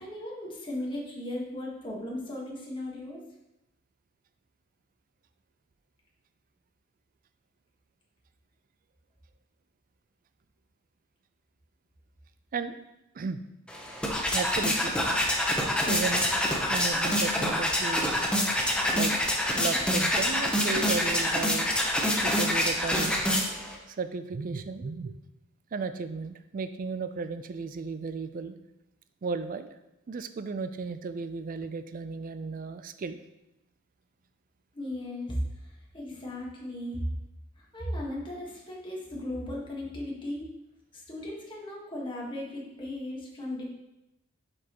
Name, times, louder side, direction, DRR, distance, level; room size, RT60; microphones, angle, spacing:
voice 1, 0.0-3.2 34.7-35.4 35.9-37.0 37.6-40.5 40.9-43.6, left 1 dB, 25° left, -3 dB, 1.4 m, -36 dB
sound 1, 13.7-23.8, left 1 dB, 5° left, 0.8 m, -26 dB
voice 2, 14.3-15.0 15.9-16.3 16.7-18.3 18.9-19.3 19.5-21.7 22.2-23.2 23.9-25.2 25.7-28.5 29.2-29.7 30.1-33.2, right 4 dB, 45° right, 11 dB, 0.4 m, -34 dB
7.4 x 5.2 x 3.0 m, 0.91 s
head